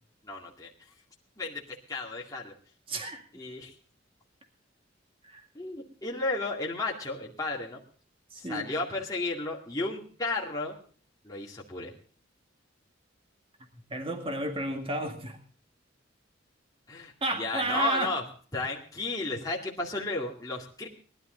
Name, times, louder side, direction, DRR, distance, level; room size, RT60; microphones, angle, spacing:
voice 1, 0.2-0.9 1.4-2.5 3.3-3.7 5.5-7.8 8.3-10.8 11.2-11.9 16.9-18.2 18.5-20.9, left 2 dB, 20° left, -3 dB, 2.3 m, -33 dB
voice 2, 2.9-3.2 5.2-5.4 8.3-8.7 13.9-15.4 17.2-18.1, right 2 dB, 30° right, 5 dB, 2.0 m, -32 dB
19.5 x 11.5 x 3.9 m, 0.43 s
head